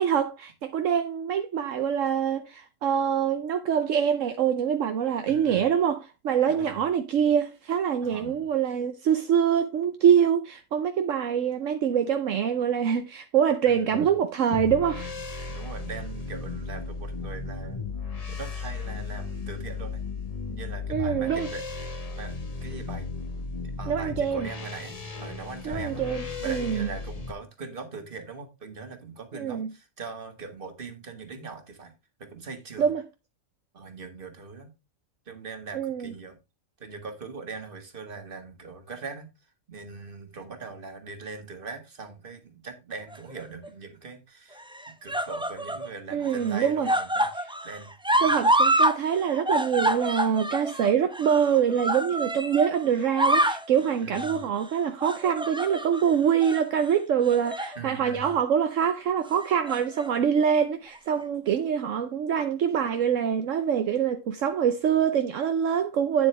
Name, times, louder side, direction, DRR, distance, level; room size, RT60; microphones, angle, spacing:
voice 1, 0.0-15.1 20.9-21.5 23.9-24.5 25.6-26.9 29.4-29.7 32.8-33.0 35.7-36.1 46.1-46.9 48.2-66.3, right 8 dB, 70° right, 1.1 m, -25 dB
voice 2, 5.3-5.8 6.5-6.8 8.0-8.5 13.6-14.1 15.5-17.8 18.3-20.0 20.5-21.6 22.2-22.3 22.6-23.1 23.8-24.9 25.2-26.0 26.4-31.9 32.2-33.0 33.7-34.7 35.3-36.4 36.8-39.3 39.7-44.6 45.0-47.3 47.6-47.9 48.2-48.3 54.0-54.4 57.7-58.3, right 4 dB, 40° right, 1.8 m, -41 dB
sound 1, 14.5-27.3, left 4 dB, 30° left, 1.1 m, -35 dB
sound 2, 43.1-43.7 44.6-45.9 46.2-49.0 49.2-52.7 53.0-53.7 54.1-54.4 55.0-56.0 56.4-56.6 57.3-57.8 58.1-58.3 59.4-60.1 61.0-61.1, right 1 dB, 5° right, 0.4 m, -27 dB
9.3 x 7.6 x 3.2 m
omnidirectional pair, 1.4 m